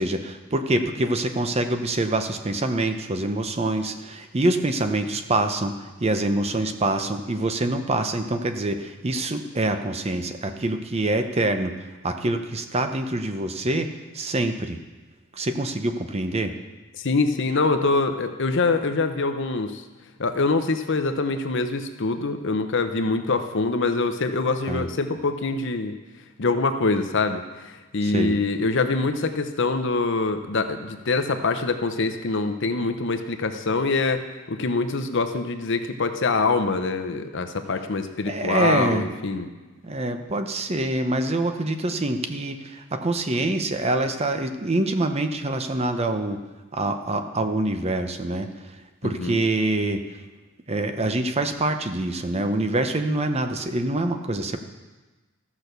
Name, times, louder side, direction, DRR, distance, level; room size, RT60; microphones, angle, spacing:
voice 1, 0.0-11.7 12.0-14.8 15.4-16.5 24.7-24.9 28.0-28.3 38.3-39.1 39.8-46.4 46.7-48.5 49.0-50.0 50.7-54.6, right 2 dB, 30° right, 7 dB, 0.7 m, -25 dB
voice 2, 17.0-19.8 20.2-26.0 26.4-39.5 49.0-49.4, left 3 dB, 60° left, 8 dB, 0.8 m, -24 dB
14.0 x 6.1 x 6.7 m, 1.2 s
head